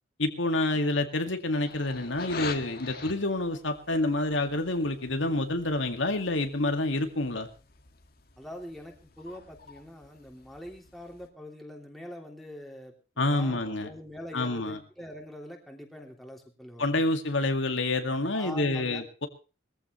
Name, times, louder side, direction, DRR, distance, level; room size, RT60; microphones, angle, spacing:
voice 1, 0.2-7.5 13.2-13.9 14.3-14.8 16.8-19.3, left 2 dB, 70° left, 6 dB, 2.1 m, -28 dB
sound 1, 1.6-11.3, left 4 dB, 50° left, 1.9 m, -45 dB
voice 2, 8.4-17.0 18.3-19.0, equal, ahead, 1 dB, 3.1 m, -44 dB
21.5 x 15.0 x 3.2 m, 0.35 s
head